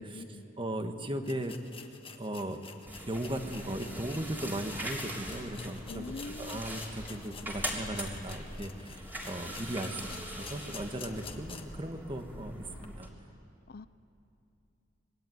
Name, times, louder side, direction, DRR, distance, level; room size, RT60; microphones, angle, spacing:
voice 1, 0.0-0.4 5.9-6.7 13.7-13.9, left 3 dB, 50° left, 14 dB, 0.5 m, -43 dB
voice 2, 0.6-1.5 2.1-2.6 3.1-10.1 10.4-13.1, right 1 dB, 25° right, 6 dB, 1.4 m, -37 dB
sound 1, 0.7-0.8 1.2-11.8 12.2-12.3 12.8-12.9, left 5 dB, 30° left, 1.5 m, -49 dB
sound 2, 2.9-13.1, equal, 10° right, 3.4 m, -42 dB
26.0 x 21.0 x 9.4 m, 2.7 s
head